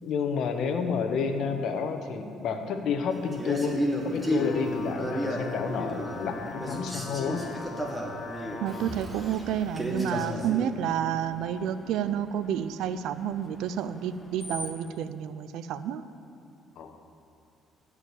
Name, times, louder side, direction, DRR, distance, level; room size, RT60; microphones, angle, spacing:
voice 1, 0.0-7.4 10.1-10.5 16.8-17.0, left 5 dB, 70° left, 6 dB, 1.0 m, -30 dB
Male speech man speaking, 3.3-6.3 6.6-10.7, equal, 10° right, 1.8 m, -32 dB
sound 1, 4.0-9.0, left 3 dB, 45° left, 1.5 m, -41 dB
Screech, 5.6-14.9, left 1 dB, 5° left, 1.0 m, -49 dB
voice 2, 8.6-16.0, right 9 dB, 80° right, 13 dB, 0.5 m, -30 dB
15.0 x 5.0 x 8.3 m, 2.6 s
cardioid pair, 90°, 0 cm